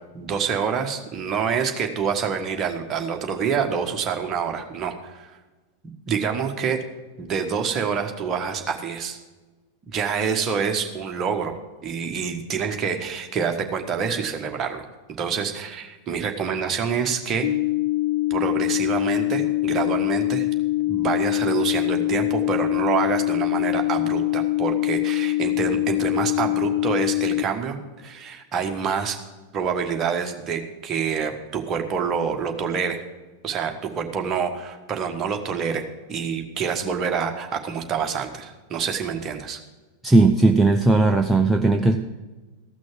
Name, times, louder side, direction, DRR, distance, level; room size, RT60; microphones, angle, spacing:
voice 1, 0.1-5.3 6.1-6.8 7.2-9.2 9.9-11.5 11.8-14.8 15.2-17.5 18.3-20.5 20.9-29.2 29.5-33.0 33.4-35.8 36.1-39.6, right 6 dB, 30° right, 3 dB, 1.5 m, -27 dB
sound 1, 17.4-27.4, left 19 dB, 50° left, 0.5 m, -23 dB
voice 2, 40.0-42.0, right 2 dB, 5° right, 4 dB, 0.6 m, -17 dB
15.0 x 6.1 x 7.5 m, 1.2 s
figure-of-eight pair, 90°, 0 cm